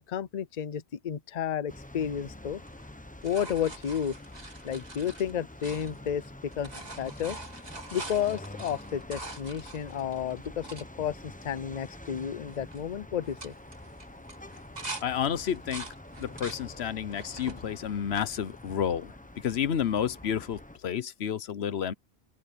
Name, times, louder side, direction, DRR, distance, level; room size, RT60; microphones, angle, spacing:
voice 1, 0.0-2.6 3.2-4.2 4.6-6.2 6.6-6.7 7.0-7.4 7.9-13.5, left 8 dB, 45° left, 0.7 m, -32 dB
sound 1, 1.7-20.8, left 1 dB, 10° left, 1.0 m, -46 dB
sound 2, 2.6-6.3 6.5-10.9 11.4-11.5 11.8-12.2 12.5-12.8 13.2-15.0 15.4-16.6 17.1-17.6 18.2-19.0 20.6-20.7, right 2 dB, 40° right, 2.4 m, -44 dB
voice 2, 15.0-15.9 16.2-19.2 19.4-21.9, left 8 dB, 85° left, 1.1 m, -30 dB
open air
omnidirectional pair, 1.0 m